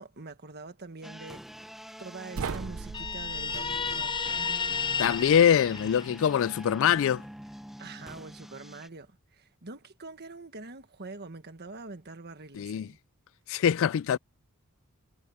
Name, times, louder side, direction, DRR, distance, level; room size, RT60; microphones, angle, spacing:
voice 1, 0.0-1.4 2.0-4.3 7.8-13.0, right 3 dB, 50° right, 1.6 m, -44 dB
sound 1, 1.0-8.9, equal, ahead, 1.0 m, -45 dB
sound 2, 2.3-5.4, right 5 dB, 70° right, 0.6 m, -40 dB
Guitar, 2.9-6.5, left 5 dB, 20° left, 0.8 m, -32 dB
voice 2, 5.0-7.2 12.6-12.9 13.5-14.2, left 8 dB, 65° left, 0.3 m, -23 dB
head